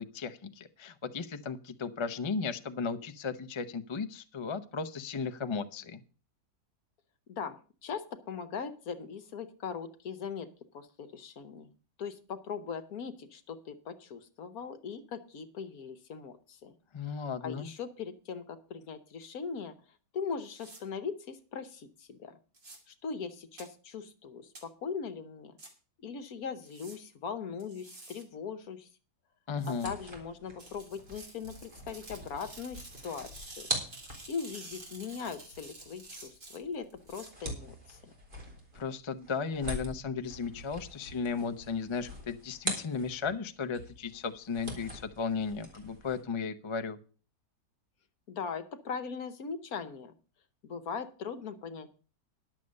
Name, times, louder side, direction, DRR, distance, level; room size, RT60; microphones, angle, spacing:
voice 1, 0.0-6.0 16.9-17.7 29.5-29.9 38.7-47.0, left 5 dB, 40° left, 9 dB, 0.4 m, -35 dB
voice 2, 7.3-11.7 12.0-16.7 17.0-19.7 20.1-22.4 22.9-25.6 26.0-28.9 29.7-33.7 34.3-38.1 48.3-50.1 50.6-51.9, left 6 dB, 65° left, 10 dB, 1.4 m, -40 dB
sound 1, 20.6-20.8 22.5-22.8 23.6-23.7 24.6-24.7 25.6-25.7 26.6-27.0 27.6-28.2 29.6-29.9 30.6-37.3, right 2 dB, 45° right, 3.0 m, -50 dB
sound 2, 29.8-43.4 43.7-46.2, equal, 30° right, 3.3 m, -43 dB
11.0 x 7.5 x 6.4 m, 0.38 s
omnidirectional pair, 1.8 m